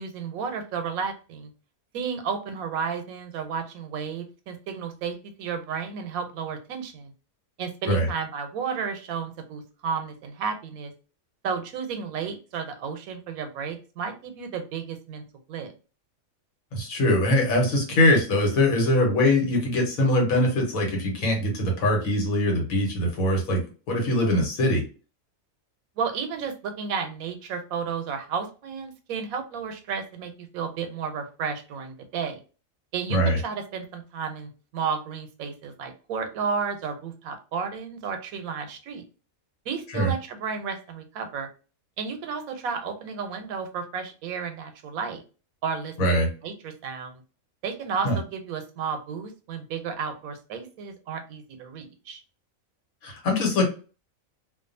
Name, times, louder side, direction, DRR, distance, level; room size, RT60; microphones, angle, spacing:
voice 1, 0.0-1.5 1.9-7.1 7.6-10.9 11.4-15.7 26.0-32.4 32.9-39.0 39.7-41.5 42.0-45.2 45.6-47.1 47.6-52.2, right 6 dB, 90° right, 7 dB, 1.0 m, -32 dB
voice 2, 16.7-23.6 23.9-24.8 33.1-33.4 39.9-40.1 46.0-46.3 48.0-48.2 53.0-53.7, left 1 dB, 85° left, 1 dB, 1.3 m, -22 dB
2.5 x 2.3 x 2.5 m, 0.35 s
omnidirectional pair, 1.4 m